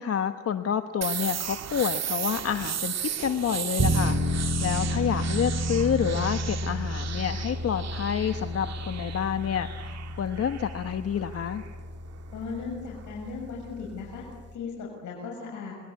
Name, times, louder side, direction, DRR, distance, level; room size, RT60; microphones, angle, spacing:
voice 1, 0.0-2.9 3.2-11.6, left 8 dB, 50° left, 8 dB, 1.2 m, -29 dB
sound 1, 1.0-12.6, right 9 dB, 60° right, 2.5 m, -36 dB
sound 2, 3.8-14.5, equal, 40° right, 4.2 m, -31 dB
voice 2, 12.3-14.3 14.5-15.7, left 5 dB, 75° left, -2 dB, 6.9 m, -37 dB
27.5 x 21.5 x 8.4 m, 1.5 s
cardioid pair, 90°, 30 cm